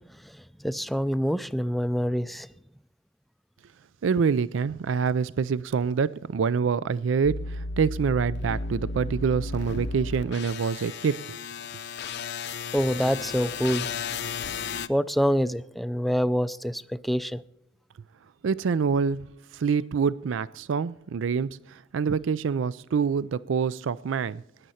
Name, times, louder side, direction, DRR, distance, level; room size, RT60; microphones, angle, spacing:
voice 1, 0.6-2.5 12.1-12.2 12.7-13.9 14.9-17.4, equal, ahead, 0.4 m, -26 dB
voice 2, 4.0-11.4 18.4-19.3 19.5-24.4, right 6 dB, 80° right, 0.4 m, -26 dB
sound 1, 7.2-14.9, left 4 dB, 60° left, 0.7 m, -34 dB
20.0 x 10.0 x 4.2 m
head